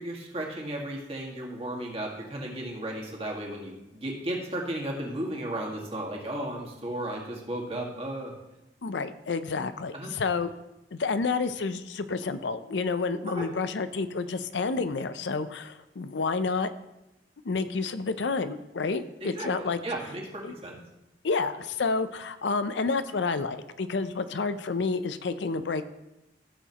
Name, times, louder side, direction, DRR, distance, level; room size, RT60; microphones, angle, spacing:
voice 1, 0.0-8.3 9.9-10.1 13.3-13.5 19.2-20.8, right 1 dB, 30° right, -1 dB, 1.9 m, -34 dB
voice 2, 8.8-10.5 10.9-16.7 17.4-19.8 20.4-20.5 21.2-25.9, left 4 dB, 75° left, 12 dB, 0.6 m, -29 dB
15.0 x 7.1 x 3.0 m, 0.94 s
head